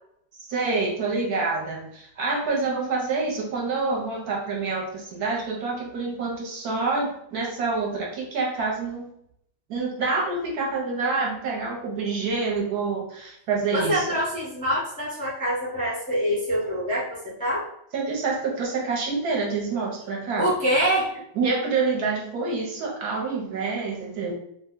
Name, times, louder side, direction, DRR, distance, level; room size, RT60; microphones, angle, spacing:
voice 1, 0.4-9.1 9.7-14.2 17.9-20.5 21.4-24.3, right 4 dB, 65° right, -1 dB, 1.1 m, -27 dB
voice 2, 13.7-17.7 20.4-21.1, equal, 10° left, -7 dB, 0.5 m, -25 dB
2.9 x 2.1 x 3.6 m, 0.73 s
omnidirectional pair, 1.9 m